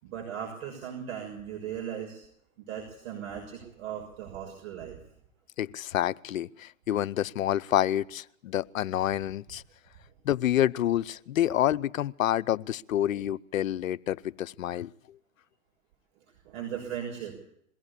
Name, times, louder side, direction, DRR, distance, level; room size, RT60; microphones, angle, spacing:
voice 1, 0.0-2.2 2.6-5.0 16.4-17.4, right 9 dB, 55° right, 6.6 m, -38 dB
voice 2, 5.6-9.6 10.2-14.9, left 12 dB, 80° left, 0.8 m, -28 dB
22.0 x 16.5 x 8.5 m
hypercardioid pair, 120°, 40 cm